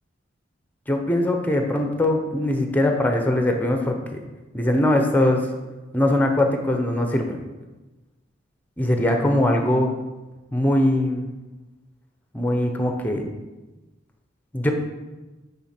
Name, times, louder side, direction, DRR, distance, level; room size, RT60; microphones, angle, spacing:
voice 1, 0.9-4.2 4.5-5.5 5.9-7.4 8.8-9.9 10.5-11.3 12.3-13.4 14.5-14.7, left 1 dB, 10° left, 4 dB, 0.7 m, -21 dB
9.0 x 4.1 x 4.4 m, 1.1 s
head